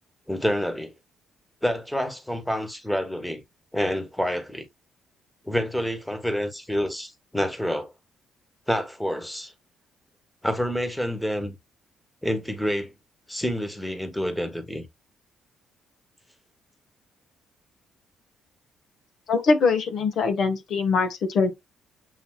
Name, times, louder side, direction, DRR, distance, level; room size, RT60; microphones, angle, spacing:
voice 1, 0.3-0.9 1.6-3.4 3.7-4.7 5.4-7.9 8.7-9.5 10.4-11.6 12.2-12.9 13.3-14.8, equal, 5° left, 1.3 m, -28 dB
voice 2, 19.3-21.5, left 4 dB, 70° left, 1.1 m, -22 dB
7.7 x 2.7 x 2.2 m
cardioid pair, 75°, 0 cm